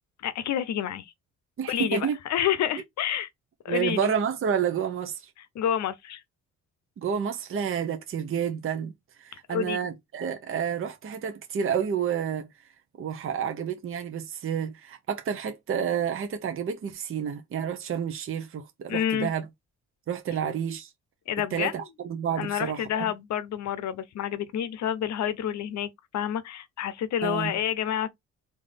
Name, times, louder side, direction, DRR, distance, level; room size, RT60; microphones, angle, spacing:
voice 1, 0.2-1.1 1.7-3.3 3.6-4.1 5.5-6.2 9.5-9.8 18.9-19.3 21.3-21.7 22.3-28.1, left 10 dB, 65° left, 0.7 m, -29 dB
voice 2, 1.6-2.2 3.7-5.3 7.0-8.9 9.2-12.5 13.0-19.4 20.1-20.9 21.5-23.1 27.2-27.5, right 8 dB, 45° right, 0.8 m, -29 dB
3.6 x 2.7 x 3.3 m
cardioid pair, 90°, 30 cm